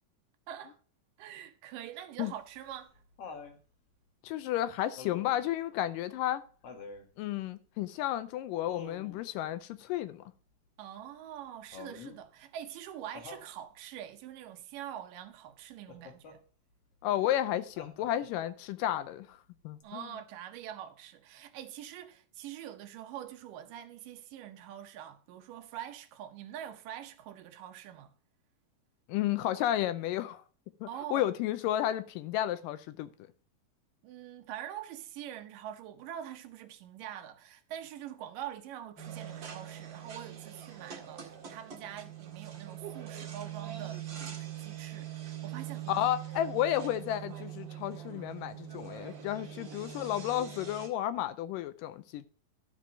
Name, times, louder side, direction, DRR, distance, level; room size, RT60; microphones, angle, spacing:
voice 1, 0.5-0.8 1.2-2.9 10.8-16.4 19.8-28.1 30.9-31.3 34.0-46.1, right 10 dB, 75° right, 2.3 m, -44 dB
Laughter, 2.3-3.6 5.0-5.5 6.6-7.1 8.7-9.2 11.7-12.2 13.2-13.5 15.9-16.4 17.8-18.4 19.8-19.9, left 4 dB, 55° left, 1.9 m, -47 dB
voice 2, 4.2-6.4 7.2-10.2 17.0-19.4 19.6-20.1 29.1-30.4 30.8-33.1 45.9-52.3, left 12 dB, 80° left, 2.1 m, -32 dB
sound 1, 39.0-50.9, right 10 dB, 40° right, 2.1 m, -43 dB
13.0 x 4.6 x 5.1 m
omnidirectional pair, 4.0 m